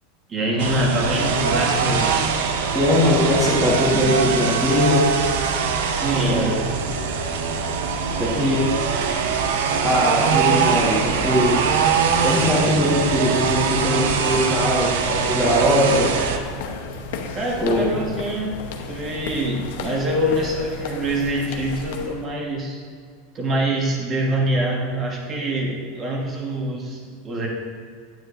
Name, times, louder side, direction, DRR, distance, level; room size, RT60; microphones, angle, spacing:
voice 1, 0.3-2.3 6.0-6.6 17.3-18.5 18.9-22.8 23.3-27.5, right 1 dB, 20° right, -1 dB, 1.3 m, -25 dB
sound 1, 0.6-16.4, right 6 dB, 80° right, 0.8 m, -22 dB
voice 2, 2.7-5.2 6.1-6.6 8.2-8.6 9.8-11.7 12.2-16.2 17.6-17.9, left 1 dB, ahead, -10 dB, 1.5 m, -20 dB
sound 2, 15.7-22.2, left 4 dB, 70° left, 0.8 m, -34 dB
9.4 x 9.0 x 2.6 m, 2.1 s
supercardioid pair, 160°, 0 cm